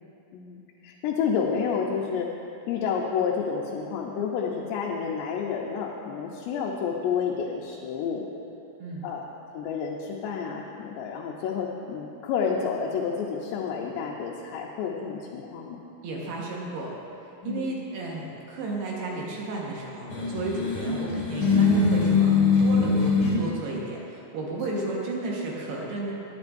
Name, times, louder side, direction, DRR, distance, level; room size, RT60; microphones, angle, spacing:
voice 1, 0.8-2.3 2.7-8.3 9.0-15.8 17.4-17.7 24.7-24.8, left 6 dB, 90° left, -2 dB, 3.0 m, -30 dB
voice 2, 16.0-16.9 17.4-26.1, right 2 dB, 75° right, -3 dB, 3.3 m, -33 dB
sound 1, 20.1-23.4, left 4 dB, 35° left, 2.6 m, -22 dB
20.0 x 9.8 x 2.6 m, 2.8 s
omnidirectional pair, 4.8 m